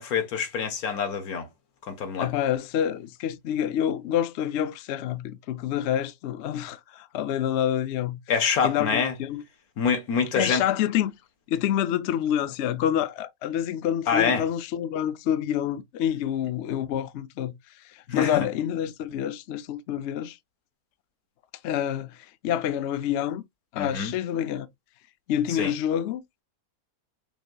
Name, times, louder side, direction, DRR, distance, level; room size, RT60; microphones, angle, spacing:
voice 1, 0.0-1.5 1.9-2.3 8.3-9.1 9.8-10.6 14.1-14.4 18.1-18.5 23.8-24.1 25.5-25.7, left 6 dB, 85° left, 1.6 m, -26 dB
voice 2, 2.2-8.2 8.6-9.4 10.3-11.1 11.5-17.5 17.8-20.4 21.6-23.4 23.7-24.7 25.3-26.2, left 10 dB, 65° left, 0.7 m, -27 dB
5.8 x 2.8 x 2.2 m
omnidirectional pair, 1.5 m